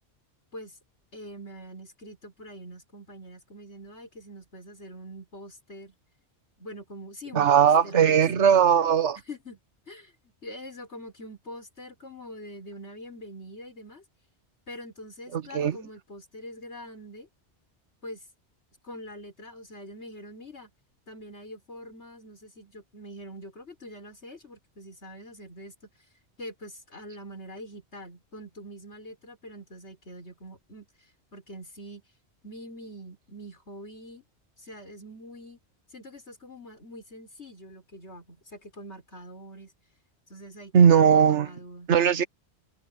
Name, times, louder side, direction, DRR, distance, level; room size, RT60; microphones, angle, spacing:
voice 1, 1.1-5.9 6.6-8.4 9.3-9.6 9.9-10.1 10.4-14.0 14.7-17.3 18.0-18.2 18.8-20.7 21.1-25.7 26.4-30.9 31.3-32.0 32.4-34.2 34.6-35.6 35.9-39.7 40.3-41.9, equal, 75° left, 6.1 m, -44 dB
voice 2, 7.3-9.2 15.3-15.8 40.7-41.5 41.9-42.2, right 8 dB, 90° right, 1.3 m, -19 dB
omnidirectional pair, 1.1 m